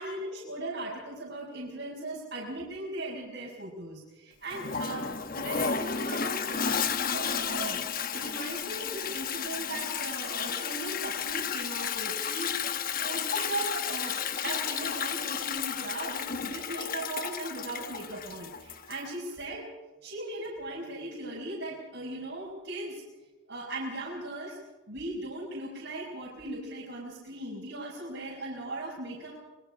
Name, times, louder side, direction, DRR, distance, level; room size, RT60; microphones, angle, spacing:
voice 1, 0.0-12.7 13.0-14.2 14.4-19.6 20.0-23.0 23.5-24.6 24.9-29.4, right 2 dB, 60° right, -4 dB, 5.2 m, -38 dB
Toilet flush, 4.5-19.1, left 7 dB, 45° left, 1.0 m, -32 dB
25.0 x 23.0 x 5.0 m, 1.2 s
head